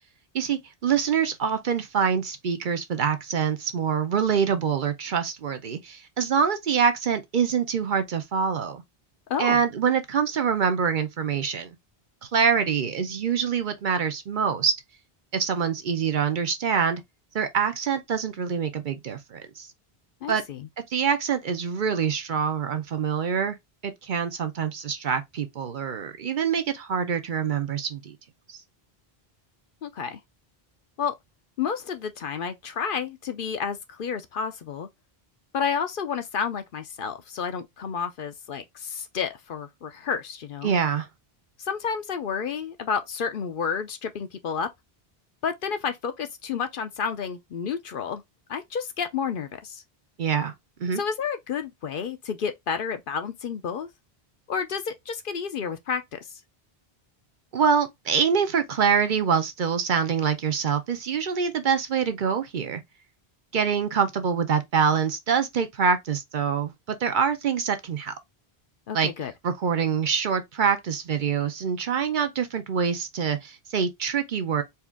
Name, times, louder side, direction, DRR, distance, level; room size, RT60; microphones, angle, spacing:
voice 1, 0.3-8.8 9.4-11.7 12.2-14.7 15.3-17.0 17.3-19.7 20.3-20.4 20.9-23.6 23.8-28.2 28.5-28.6 40.6-41.1 50.2-50.5 50.8-51.0 57.5-62.8 63.5-68.1 68.9-69.1 69.4-74.6, right 6 dB, 55° right, 0.7 m, -25 dB
voice 2, 9.3-9.6 20.2-20.7 29.8-30.2 31.0-31.1 31.6-34.9 35.5-40.7 41.6-44.7 45.4-48.2 48.5-49.8 51.0-53.9 54.5-56.2 68.9-69.3, left 6 dB, 65° left, 0.8 m, -30 dB
4.4 x 2.4 x 3.5 m
omnidirectional pair, 1.0 m